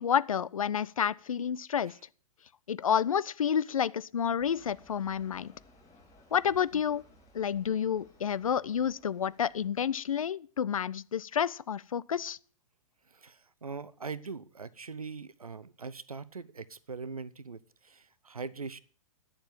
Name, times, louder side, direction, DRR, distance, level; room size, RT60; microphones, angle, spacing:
voice 1, 0.0-1.9 2.7-5.5 6.3-7.0 7.3-12.4, left 8 dB, 65° left, 0.5 m, -29 dB
sound 1, 4.4-9.7, left 1 dB, 20° left, 3.8 m, -60 dB
voice 2, 13.0-18.8, right 4 dB, 80° right, 0.7 m, -42 dB
10.0 x 7.1 x 7.4 m
figure-of-eight pair, 110°, 18 cm